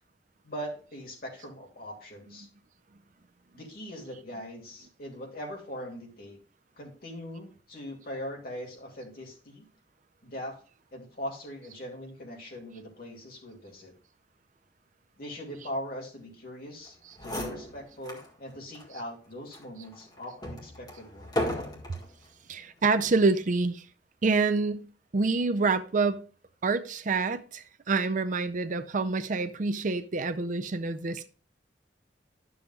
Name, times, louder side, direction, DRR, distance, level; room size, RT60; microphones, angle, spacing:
voice 1, 0.4-2.5 3.5-6.4 6.8-9.6 10.2-10.6 10.9-13.9 15.2-17.0 17.2-21.5, equal, 55° left, 2.5 m, -41 dB
sound 1, 16.9-17.0 17.2-18.3 18.7-18.9 19.5-22.1 22.9-23.2, left 1 dB, 25° left, 1.7 m, -35 dB
voice 2, 22.5-23.8 24.2-24.9 25.1-26.2 26.6-31.3, right 3 dB, 45° right, 0.5 m, -27 dB
11.5 x 7.0 x 2.3 m
head